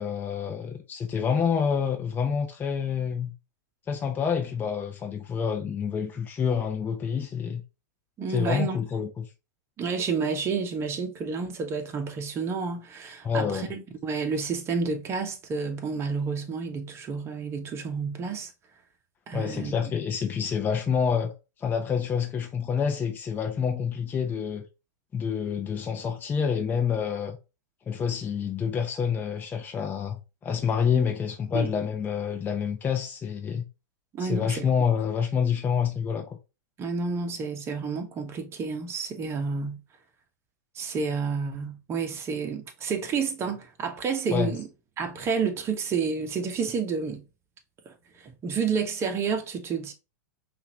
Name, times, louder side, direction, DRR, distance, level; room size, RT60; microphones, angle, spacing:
voice 1, 0.0-3.3 3.9-7.6 8.3-9.3 13.2-13.7 19.3-21.3 21.6-24.6 25.1-27.4 27.9-33.7 34.2-36.4 44.3-44.6, left 7 dB, 20° left, 0.7 m, -27 dB
voice 2, 8.2-8.8 9.8-18.5 19.3-19.7 31.5-31.7 34.1-34.7 36.8-39.8 40.7-44.7 45.0-47.2 47.8-49.9, right 5 dB, 25° right, 1.1 m, -30 dB
5.6 x 2.7 x 2.9 m
hypercardioid pair, 115°, 9 cm